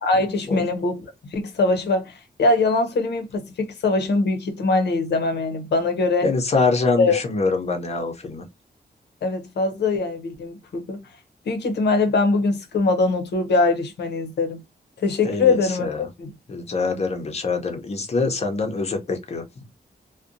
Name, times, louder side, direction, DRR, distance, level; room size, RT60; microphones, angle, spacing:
voice 1, 0.0-1.0 1.3-6.3 7.0-7.2 9.2-11.0 11.5-14.6 15.0-16.3, left 3 dB, 90° left, 0.7 m, -22 dB
voice 2, 6.2-8.5 15.2-16.1 16.5-19.4, left 4 dB, 40° left, 0.6 m, -24 dB
2.6 x 2.1 x 2.5 m
wide cardioid pair, 170°, 17 cm